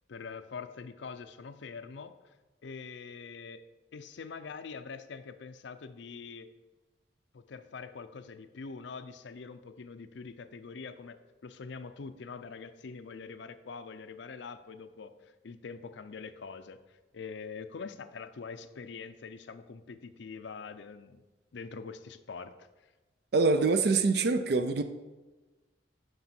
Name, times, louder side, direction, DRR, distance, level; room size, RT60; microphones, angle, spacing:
voice 1, 0.1-2.1 2.6-3.6 3.9-6.5 7.3-11.2 11.4-16.8 17.1-21.2 21.5-22.5, left 5 dB, 70° left, 11 dB, 0.5 m, -44 dB
voice 2, 23.3-24.8, right 3 dB, 55° right, 9 dB, 0.4 m, -25 dB
8.0 x 5.4 x 4.3 m, 1.2 s
head